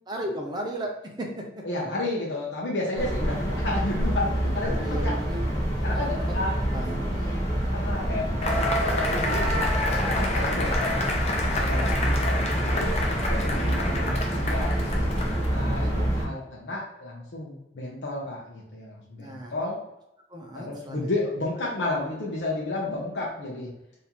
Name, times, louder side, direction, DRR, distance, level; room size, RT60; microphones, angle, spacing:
voice 1, 0.1-0.9 1.2-1.6 4.6-5.4 5.8-6.2 6.7-7.5 19.2-19.5 20.3-21.1, right 1 dB, 25° right, 0 dB, 0.6 m, -35 dB
voice 2, 1.6-5.1 5.8-6.5 7.7-9.6 10.1-15.1 15.5-19.8 20.5-23.7, left 2 dB, 80° left, -3 dB, 0.7 m, -32 dB
sound 1, 2.9-16.2, equal, 20° left, 1.1 m, -27 dB
Cheering / Applause / Crowd, 8.4-15.7, left 1 dB, 35° left, 0.5 m, -29 dB
3.6 x 2.7 x 2.9 m, 0.85 s
head